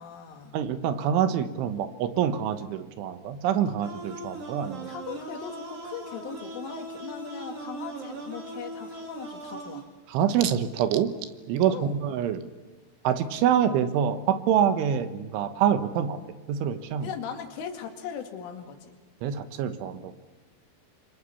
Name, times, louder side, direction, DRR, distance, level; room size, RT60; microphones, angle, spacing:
voice 1, 0.0-0.6 4.8-9.9 11.7-12.0 17.0-19.0, left 7 dB, 80° left, 5 dB, 4.6 m, -39 dB
voice 2, 0.5-4.9 10.1-11.1 11.5-12.4 13.1-16.2 16.5-17.1 19.2-20.1, right 9 dB, 80° right, 10 dB, 3.6 m, -26 dB
sound 1, 3.8-9.8, right 2 dB, 35° right, 3.5 m, -39 dB
27.0 x 24.5 x 7.0 m, 1.3 s
omnidirectional pair, 5.6 m